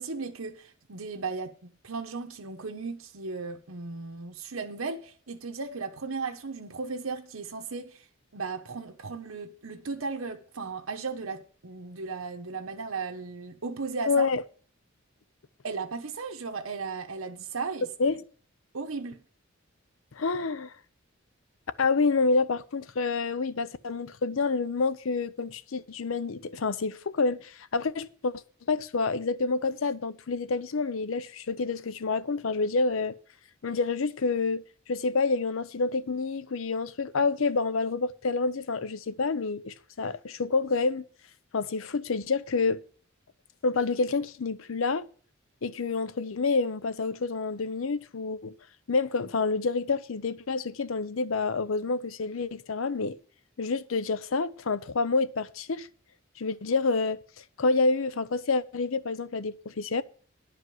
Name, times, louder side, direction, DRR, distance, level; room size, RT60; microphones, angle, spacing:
voice 1, 0.0-8.0 8.3-14.3 15.6-17.9 18.7-19.2, right 4 dB, 90° right, 1.0 m, -36 dB
voice 2, 14.1-14.4 18.0-18.2 20.1-20.7 21.8-28.4 28.7-33.1 33.6-34.6 34.9-41.0 41.5-42.8 43.6-45.1 45.6-48.5 48.9-53.2 53.6-55.9 56.4-57.2 57.6-60.0, left 4 dB, 75° left, 0.6 m, -28 dB
11.0 x 5.1 x 7.7 m
head